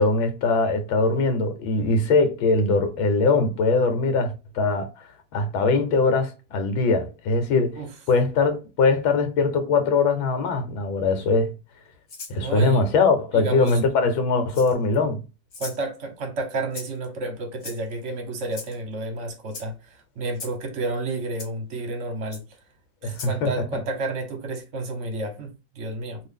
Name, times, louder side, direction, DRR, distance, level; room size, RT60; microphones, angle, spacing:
voice 1, 0.0-4.9 5.3-7.8 8.1-11.5 12.3-15.2 23.0-23.5, left 3 dB, 80° left, 1.6 m, -21 dB
Rattle (instrument), 12.1-12.4 13.6-13.8 14.5-14.9 15.5-15.8 16.7-17.1 17.6-18.0 18.5-18.8 19.5-19.7 20.3-20.6 21.4-21.5 22.3-22.4 23.1-23.4, left 4 dB, 50° left, 1.0 m, -38 dB
voice 2, 12.3-12.8 13.3-13.8 15.6-22.4 23.0-26.2, right 2 dB, 50° right, 0.9 m, -31 dB
3.0 x 2.6 x 3.4 m
omnidirectional pair, 2.2 m